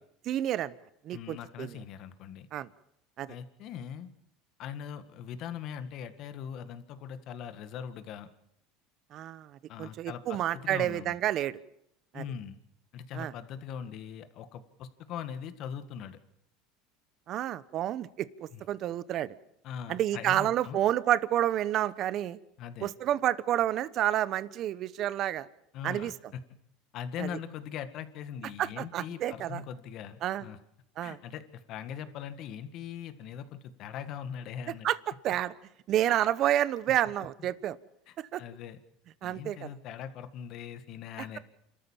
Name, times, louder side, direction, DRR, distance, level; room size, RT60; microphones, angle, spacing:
voice 1, 0.3-0.7 1.0-1.8 2.5-2.7 3.2-3.4 9.1-11.6 12.1-12.2 13.1-13.3 17.3-19.4 19.9-22.4 22.8-25.5 25.8-26.1 27.2-27.3 28.6-29.6 30.2-30.5 31.0-31.2 34.8-35.5 35.9-37.8 38.3-38.4 39.2-39.7, right 12 dB, 45° right, 17 dB, 1.0 m, -29 dB
voice 2, 1.1-2.5 3.3-4.1 4.6-8.3 9.7-11.1 12.1-12.6 12.9-16.2 18.5-18.6 19.6-20.8 22.6-22.9 25.7-26.2 26.9-30.6 31.0-34.9 36.1-36.2 38.1-38.8 39.2-41.4, left 8 dB, 55° left, 10 dB, 1.8 m, -41 dB
29.0 x 13.5 x 7.4 m, 0.76 s
supercardioid pair, 115°, 0 cm